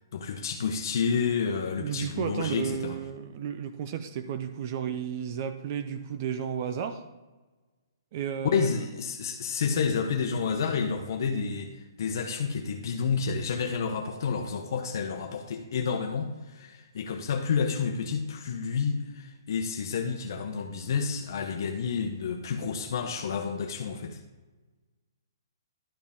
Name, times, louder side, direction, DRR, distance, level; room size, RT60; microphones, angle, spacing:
voice 1, 0.1-3.0 8.5-24.2, left 5 dB, 60° left, 4 dB, 0.9 m, -30 dB
voice 2, 1.8-7.0 8.1-8.7, right 8 dB, 40° right, 9 dB, 0.6 m, -33 dB
11.5 x 7.2 x 3.6 m, 1.2 s
hypercardioid pair, 150°, 2 cm